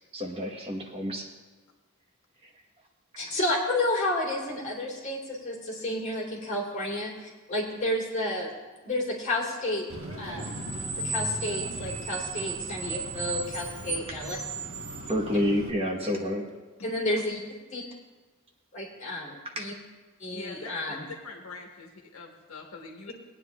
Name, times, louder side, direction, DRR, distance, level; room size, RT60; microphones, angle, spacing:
voice 1, 0.1-1.3 15.1-16.4 17.1-17.2 19.6-19.7, equal, 25° right, 0 dB, 1.1 m, -29 dB
voice 2, 3.2-8.5 8.8-9.9 10.2-10.6 10.9-14.3 16.8-17.4 17.7-17.8 18.7-19.7 20.2-21.1, left 1 dB, 35° left, -5 dB, 3.0 m, -31 dB
Screech, 9.9-15.7, right 3 dB, 65° right, 1.3 m, -35 dB
voice 3, 20.3-23.1, left 3 dB, 75° left, 1 dB, 1.4 m, -44 dB
20.5 x 9.3 x 2.4 m, 1.3 s
head